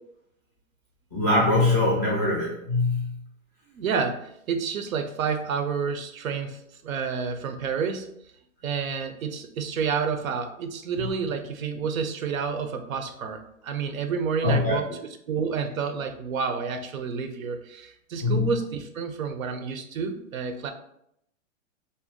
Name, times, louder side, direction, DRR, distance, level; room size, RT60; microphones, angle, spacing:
voice 1, 1.1-3.2 11.0-11.1 14.4-14.8 18.2-18.5, left 2 dB, 15° left, -5 dB, 0.4 m, -23 dB
voice 2, 3.7-8.1 8.6-14.9 15.3-20.7, right 6 dB, 85° right, 7 dB, 0.6 m, -29 dB
2.6 x 2.2 x 3.5 m, 0.74 s
hypercardioid pair, 155°, 40 cm